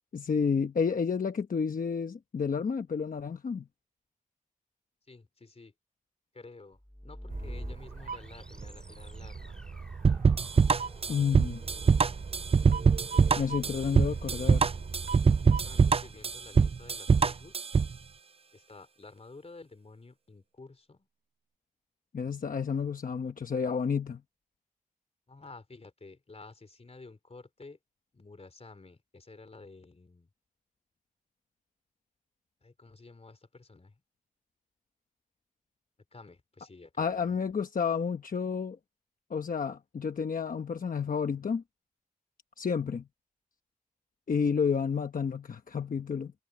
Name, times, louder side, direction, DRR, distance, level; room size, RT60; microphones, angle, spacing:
voice 1, 0.1-3.7 11.1-11.6 13.4-14.7 22.1-24.2 37.0-38.8 39.3-41.6 42.6-43.1 44.3-46.3, left 6 dB, 80° left, 1.0 m, -30 dB
voice 2, 5.1-5.7 6.3-9.6 13.7-14.7 15.5-17.7 18.5-21.1 25.3-27.8 28.1-30.3 32.6-34.0 36.1-37.4, left 3 dB, 50° left, 3.8 m, -51 dB
sound 1, 6.7-16.7, equal, 5° left, 2.4 m, -49 dB
sound 2, 7.3-15.9, right 5 dB, 80° right, 2.5 m, -41 dB
sound 3, 10.0-18.0, right 5 dB, 45° right, 0.4 m, -23 dB
wide cardioid pair, 80°, 14 cm